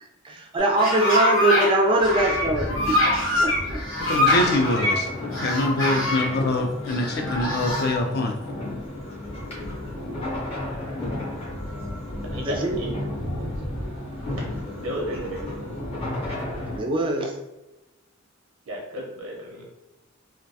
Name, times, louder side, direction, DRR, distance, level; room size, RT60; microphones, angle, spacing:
voice 1, 0.2-3.0 3.4-3.8 12.4-12.9 13.2-13.3 16.8-17.3, right 2 dB, 25° right, 2 dB, 0.3 m, -22 dB
sound 1, 0.6-1.7 2.0-5.0 5.3-6.3 6.9-8.0, left 1 dB, 80° left, 0.9 m, -24 dB
sound 2, 2.0-16.8, left 1 dB, 30° left, 0.7 m, -33 dB
voice 2, 4.1-5.1 5.4-8.3, left 2 dB, 50° left, 3 dB, 0.4 m, -24 dB
voice 3, 12.2-13.0 14.3-15.4 18.7-19.6, equal, 90° right, -1 dB, 0.6 m, -33 dB
2.2 x 2.1 x 2.7 m, 0.98 s
head